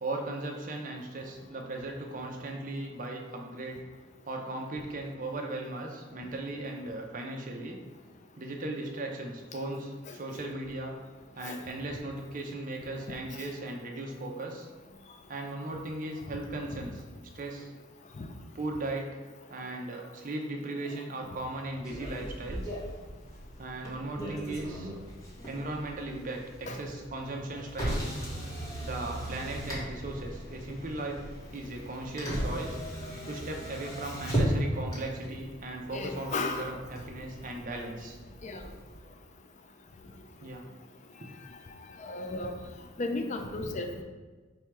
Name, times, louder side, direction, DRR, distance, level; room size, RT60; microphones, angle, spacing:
voice 1, 0.0-3.8 4.3-7.8 8.4-11.0 11.4-14.7 15.3-17.0 17.3-17.7 18.5-19.1 19.5-22.8 23.6-24.9 25.5-28.2 28.8-31.3 31.5-32.8 33.2-38.2 40.4-40.6 41.2-41.3, right 2 dB, 40° right, 1 dB, 0.6 m, -37 dB
Motor vehicle (road), 21.8-39.0, right 1 dB, 15° left, 0.9 m, -37 dB
voice 2, 35.9-36.7 38.4-38.6 42.0-42.5 43.0-44.0, left 2 dB, 35° left, 5 dB, 0.4 m, -34 dB
4.4 x 2.2 x 4.6 m, 1.3 s
head